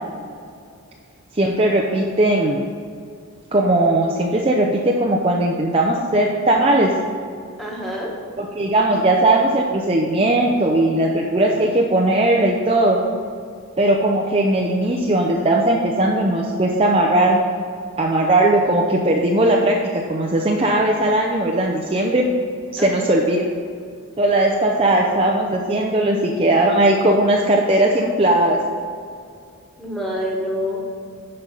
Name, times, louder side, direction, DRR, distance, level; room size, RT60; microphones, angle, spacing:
voice 1, 1.3-2.6 3.5-6.9 8.4-13.0 13.8-17.4 18.0-19.8 20.1-22.3 22.7-23.5 24.2-28.6, right 1 dB, 25° right, -1 dB, 0.6 m, -18 dB
voice 2, 7.6-8.1 22.8-23.0 24.8-24.9 29.8-31.0, equal, ahead, -3 dB, 1.7 m, -27 dB
11.0 x 5.5 x 5.5 m, 2.3 s
head